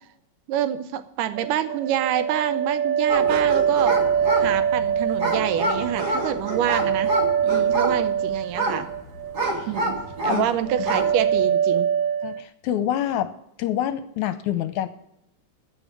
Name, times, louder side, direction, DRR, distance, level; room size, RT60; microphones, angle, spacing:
voice 1, 0.5-4.0 4.4-7.1 7.4-8.9 9.7-10.0 10.2-11.9, right 10 dB, 90° right, 11 dB, 2.3 m, -27 dB
sound 1, 1.4-9.5 9.8-10.3 10.7-12.4, right 8 dB, 70° right, 1.4 m, -24 dB
sound 2, 3.1-10.5 10.8-11.2, right 1 dB, 35° right, 2.3 m, -27 dB
voice 2, 12.2-13.3 13.6-14.9, left 11 dB, 80° left, 13 dB, 1.9 m, -26 dB
14.5 x 5.4 x 8.7 m, 0.80 s
omnidirectional pair, 3.7 m